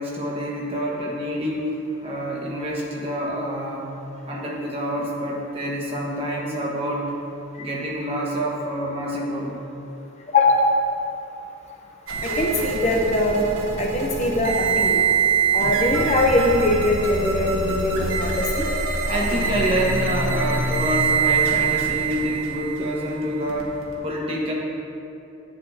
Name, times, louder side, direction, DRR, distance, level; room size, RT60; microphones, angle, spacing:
voice 1, 0.0-1.7 2.0-3.8 4.3-7.0 7.6-9.6 19.1-24.5, equal, 25° right, -4 dB, 1.4 m, -27 dB
voice 2, 10.3-10.7 12.2-13.5 13.8-15.1 15.5-18.7, left 2 dB, 35° left, 0 dB, 0.7 m, -21 dB
sound 1, 12.1-24.0, right 5 dB, 85° right, 1.3 m, -24 dB
10.5 x 9.5 x 2.8 m, 2.8 s
head